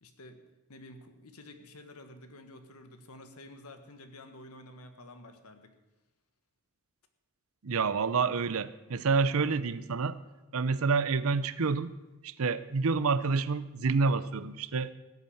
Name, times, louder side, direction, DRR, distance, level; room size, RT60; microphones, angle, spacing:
voice 1, 0.0-0.4 0.7-5.7, left 1 dB, 85° left, 8 dB, 1.5 m, -50 dB
voice 2, 7.6-10.2 10.5-12.0 12.2-14.9, right 4 dB, 70° right, 15 dB, 0.6 m, -28 dB
16.0 x 8.3 x 7.2 m, 1.1 s
head